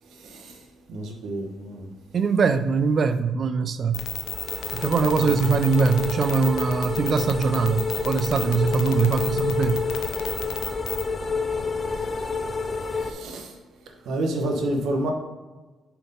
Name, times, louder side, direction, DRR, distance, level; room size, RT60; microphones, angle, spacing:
voice 1, 0.1-0.6 0.9-1.9 5.1-5.3 13.0-13.5 14.0-15.1, right 1 dB, 75° right, 3 dB, 1.1 m, -29 dB
voice 2, 2.1-4.0 4.7-9.9, right 5 dB, 50° right, 12 dB, 0.4 m, -22 dB
sound 1, 3.9-11.1, left 9 dB, 85° left, 0.5 m, -33 dB
sound 2, 4.1-13.1, left 4 dB, 30° left, 0.7 m, -29 dB
5.3 x 4.5 x 5.3 m, 1.2 s
cardioid pair, 90°, 0 cm